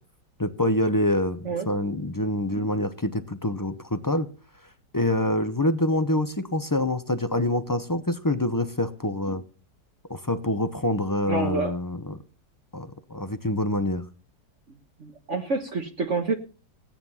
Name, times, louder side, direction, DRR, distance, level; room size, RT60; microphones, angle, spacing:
voice 1, 0.4-4.3 4.9-9.4 10.1-12.2 12.7-14.0, left 1 dB, 25° left, 11 dB, 0.4 m, -26 dB
voice 2, 11.3-11.7 15.0-16.4, right 3 dB, 45° right, 3 dB, 1.5 m, -27 dB
17.0 x 9.7 x 5.6 m, 0.36 s
omnidirectional pair, 1.9 m